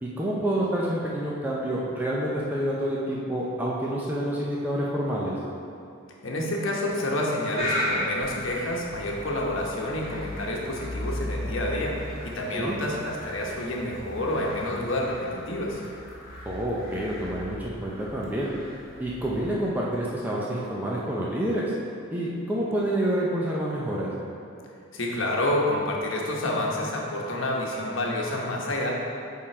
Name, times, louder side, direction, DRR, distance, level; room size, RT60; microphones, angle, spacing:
voice 1, 0.0-5.4 12.5-12.8 16.5-18.5 19.0-21.7 22.1-24.1, right 1 dB, 10° right, -6 dB, 0.6 m, -28 dB
voice 2, 6.2-15.8 24.9-28.9, left 1 dB, 75° left, -2 dB, 1.1 m, -28 dB
sound 1, 7.6-14.9, equal, 30° left, 1.7 m, -36 dB
sound 2, 8.2-19.6, left 1 dB, 45° left, 1.4 m, -40 dB
9.0 x 3.8 x 4.4 m, 2.5 s
head